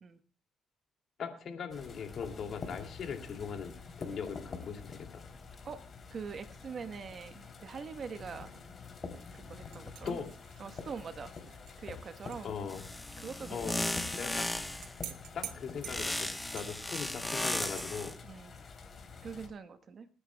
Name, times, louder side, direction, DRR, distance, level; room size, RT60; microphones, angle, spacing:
voice 1, 1.2-5.2 10.0-10.3 12.4-12.8 13.5-13.8 14.2-14.5 15.3-18.1, left 6 dB, 65° left, 4 dB, 2.6 m, -40 dB
sound 1, 1.7-19.5, left 4 dB, 45° left, 3.3 m, -48 dB
voice 2, 6.1-8.5 9.1-10.2 10.6-12.5 13.2-14.0 18.2-18.5 19.2-20.1, right 5 dB, 50° right, 10 dB, 1.2 m, -44 dB
sound 2, 9.7-12.5 12.8-12.9 14.2-17.8, right 11 dB, 90° right, 0.9 m, -48 dB
sound 3, 12.7-14.9 15.9-18.1, left 1 dB, 10° left, 1.1 m, -36 dB
27.5 x 10.0 x 2.3 m, 0.38 s
cardioid pair, 90°, 0 cm